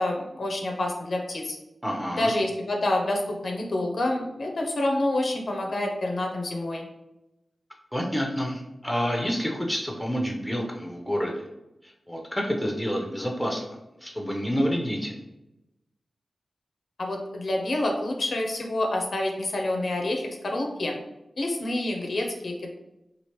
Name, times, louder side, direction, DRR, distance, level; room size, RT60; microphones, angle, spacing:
voice 1, 0.0-1.6 2.1-6.8 17.0-21.0 21.4-22.7, left 1 dB, 60° left, 1 dB, 0.6 m, -28 dB
voice 2, 1.8-2.3 7.9-11.5 12.1-15.2, equal, 5° left, 0 dB, 0.6 m, -28 dB
3.1 x 2.4 x 2.9 m, 0.92 s
wide cardioid pair, 85°, 0 cm